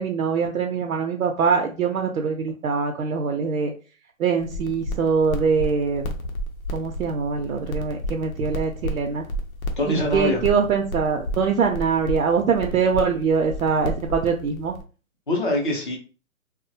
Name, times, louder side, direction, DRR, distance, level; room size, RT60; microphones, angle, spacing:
voice 1, 0.0-3.7 4.2-6.0 6.7-9.2 9.9-14.7, right 5 dB, 80° right, 1 dB, 0.5 m, -23 dB
sound 1, 4.4-14.8, equal, 80° left, 0.7 m, -32 dB
voice 2, 9.8-10.4 15.3-16.0, left 1 dB, 40° left, 0 dB, 0.5 m, -23 dB
2.3 x 2.1 x 2.6 m, 0.36 s
hypercardioid pair, 180°, 42 cm